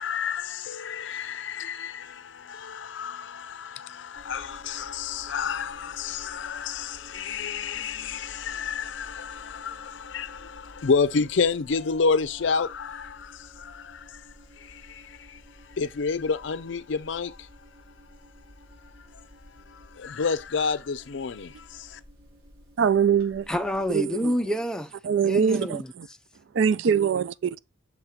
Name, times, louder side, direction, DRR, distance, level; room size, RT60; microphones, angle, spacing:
voice 1, 0.0-14.2 14.6-15.4 15.8-17.5 20.0-22.0, left 5 dB, 65° left, 0.5 m, -29 dB
sound 1, 4.1-24.0, equal, 85° right, 3.7 m, -52 dB
voice 2, 22.8-23.5 23.9-24.3 25.0-25.8 26.5-27.6, right 7 dB, 65° right, 0.3 m, -23 dB
voice 3, 23.5-24.9 25.2-25.9, equal, 5° left, 0.5 m, -28 dB
6.4 x 3.0 x 5.0 m
head